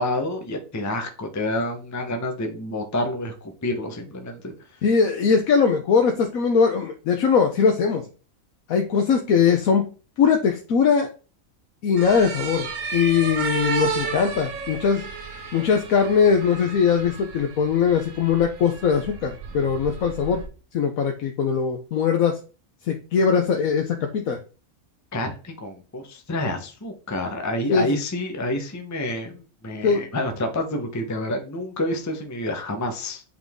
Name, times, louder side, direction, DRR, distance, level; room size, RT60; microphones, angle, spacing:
voice 1, 0.0-4.5 25.1-33.2, left 1 dB, 15° left, 4 dB, 0.7 m, -28 dB
voice 2, 4.8-8.0 8.7-9.9 10.2-11.1 11.8-15.1 15.5-20.4 20.7-22.4 22.9-24.4 27.7-28.0 29.8-30.0, left 6 dB, 80° left, 3 dB, 1.2 m, -21 dB
sound 1, 12.0-20.5, right 5 dB, 70° right, 1.4 m, -33 dB
8.0 x 3.8 x 3.6 m, 0.35 s
omnidirectional pair, 1.4 m